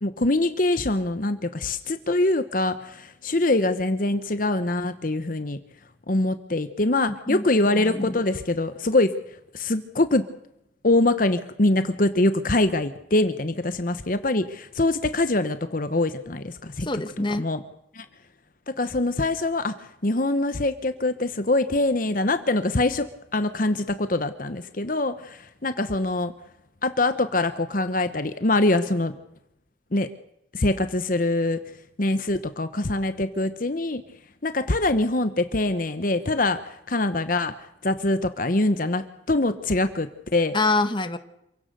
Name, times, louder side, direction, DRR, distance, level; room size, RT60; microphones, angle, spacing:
voice 1, 0.0-5.6 6.1-10.2 10.8-16.9 17.3-17.6 17.9-18.1 18.7-23.1 23.3-26.3 26.8-29.1 29.9-30.1 30.5-31.6 32.0-34.0 34.4-40.5, left 2 dB, 45° left, 11 dB, 1.0 m, -24 dB
voice 2, 7.7-8.2 16.8-17.5 40.5-41.2, left 2 dB, 25° left, 9 dB, 1.2 m, -25 dB
27.0 x 17.0 x 6.8 m, 0.82 s
head